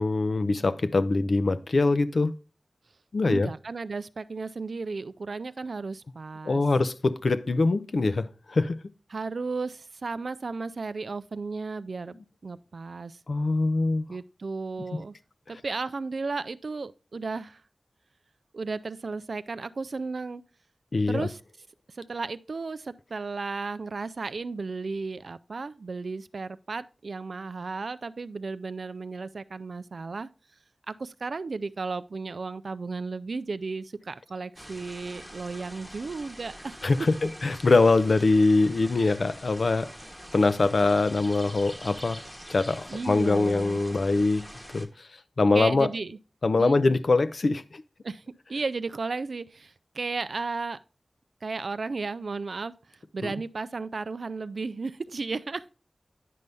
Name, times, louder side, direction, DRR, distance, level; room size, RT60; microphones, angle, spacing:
voice 1, 0.0-2.4 3.1-3.5 6.4-8.8 13.3-14.0 14.9-15.0 20.9-21.3 36.8-39.9 40.3-42.2 42.5-44.5 44.7-45.1 45.4-45.9 46.4-47.8 53.2-53.3, left 3 dB, 65° left, 0.5 m, -23 dB
voice 2, 3.2-6.6 9.1-13.2 14.1-15.1 15.5-17.6 18.5-20.4 21.1-21.4 21.9-30.3 30.9-37.1 42.9-43.8 45.5-46.2 46.6-46.8 48.0-48.2 48.5-50.8 51.4-55.7, right 4 dB, 75° right, 0.3 m, -34 dB
sound 1, 34.6-44.9, equal, 5° left, 1.0 m, -45 dB
9.3 x 5.4 x 3.3 m
wide cardioid pair, 90°, 0 cm